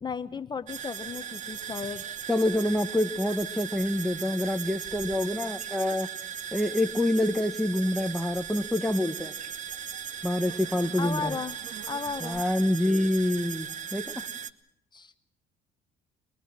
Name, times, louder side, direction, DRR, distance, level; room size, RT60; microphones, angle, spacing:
voice 1, 0.0-2.0 11.0-11.6 11.9-12.4 14.9-15.2, left 5 dB, 25° left, 10 dB, 0.9 m, -34 dB
sound 1, 0.7-14.5, right 8 dB, 45° right, 1.1 m, -38 dB
voice 2, 2.3-6.1 6.5-9.3 10.2-11.4 12.2-14.1, left 1 dB, ahead, 7 dB, 1.0 m, -27 dB
23.0 x 22.0 x 7.5 m, 0.73 s
cardioid pair, 110°, 17 cm